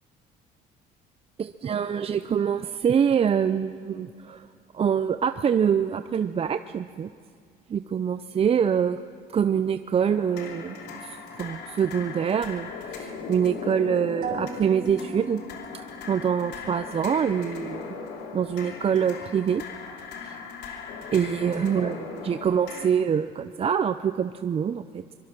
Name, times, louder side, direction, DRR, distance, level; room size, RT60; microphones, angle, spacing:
voice 1, 1.4-4.5 4.7-7.1 7.7-9.0 9.3-15.4 15.7-17.9 18.3-19.6 20.2-20.4 21.1-25.0, right 7 dB, 35° right, 11 dB, 0.6 m, -25 dB
sound 1, 10.0-22.9, left 5 dB, 80° left, 3.0 m, -38 dB
sound 2, 14.2-16.2, right 5 dB, 60° right, 5.1 m, -37 dB
24.0 x 22.5 x 6.0 m, 2.3 s
cardioid pair, 110°, 17 cm